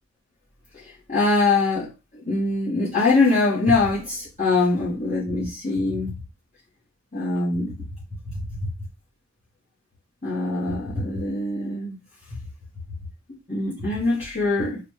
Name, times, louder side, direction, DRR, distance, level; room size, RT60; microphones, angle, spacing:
voice 1, 1.1-1.9 2.3-6.1 7.1-7.7 10.2-12.0 13.3-14.8, left 3 dB, 35° left, 1.1 m, -23 dB
3.8 x 2.2 x 3.1 m
head